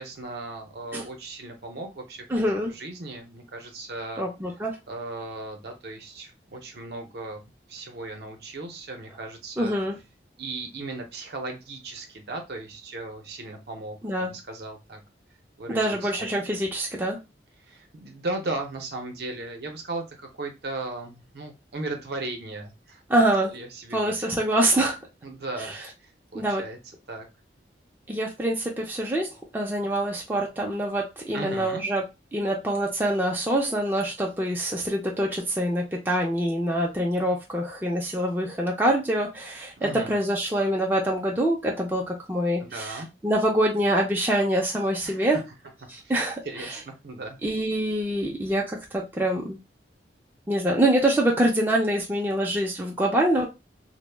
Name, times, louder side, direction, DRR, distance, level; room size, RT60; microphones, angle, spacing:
voice 1, 0.0-4.3 4.9-7.4 7.7-9.8 10.4-15.0 15.6-16.3 17.7-23.0 23.5-24.4 25.2-26.8 27.1-27.3 31.3-31.8 39.8-40.1 42.6-43.1 45.0-45.4 46.0-47.4, right 2 dB, 60° right, 4 dB, 0.6 m, -37 dB
voice 2, 2.3-2.7 4.2-4.8 9.6-10.0 14.0-14.3 15.7-17.2 23.1-23.5 23.9-25.0 26.3-26.6 28.1-32.0 32.3-45.4 45.9-46.4 47.4-49.6 50.5-53.5, right 1 dB, 10° right, -2 dB, 0.3 m, -25 dB
2.1 x 2.0 x 3.2 m, 0.26 s
head